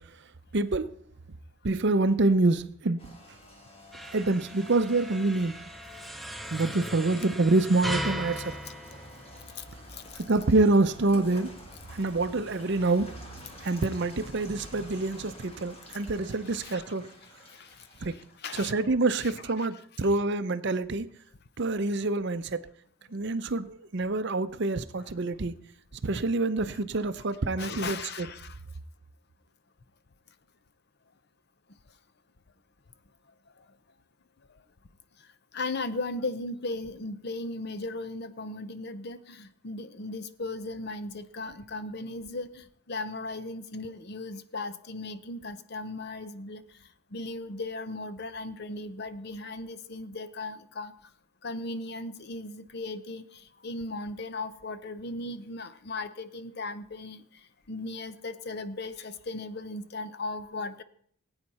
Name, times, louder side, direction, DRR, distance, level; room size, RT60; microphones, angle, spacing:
voice 1, 0.5-0.9 1.6-3.0 4.1-5.6 6.5-8.6 10.1-11.5 11.9-13.2 13.6-17.1 18.0-18.2 18.5-21.1 21.6-22.7 23.1-25.5 26.0-28.3, right 2 dB, 50° right, 0.6 m, -26 dB
Rain, 3.0-18.4, left 1 dB, 25° left, 1.7 m, -48 dB
sound 1, 3.9-9.7, equal, ahead, 0.5 m, -38 dB
voice 2, 9.6-10.2 16.5-16.9 17.2-18.9 19.2-19.7 27.6-28.6 33.6-33.7 34.5-34.6 35.2-35.3 35.5-50.9 51.4-60.8, left 2 dB, 50° left, 0.7 m, -37 dB
19.0 x 8.8 x 4.2 m
head